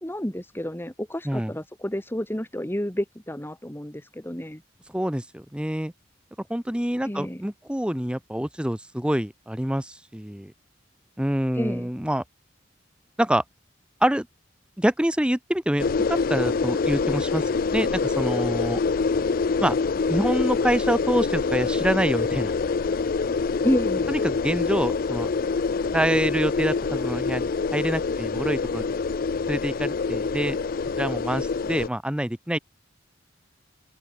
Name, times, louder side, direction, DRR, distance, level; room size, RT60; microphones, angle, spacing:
voice 1, 0.0-4.6 7.0-7.4 11.5-11.9 23.6-24.2, equal, 10° left, 2.0 m, -30 dB
voice 2, 4.9-5.9 6.5-10.5 11.2-12.2 13.2-13.4 14.0-14.3 14.8-17.4 17.7-18.8 19.6-19.7 20.1-22.5 24.1-25.3 25.9-28.8 29.5-30.6 31.0-32.6, equal, 5° right, 0.8 m, -26 dB
sound 1, 15.8-31.9, left 4 dB, 50° left, 0.5 m, -25 dB
open air
head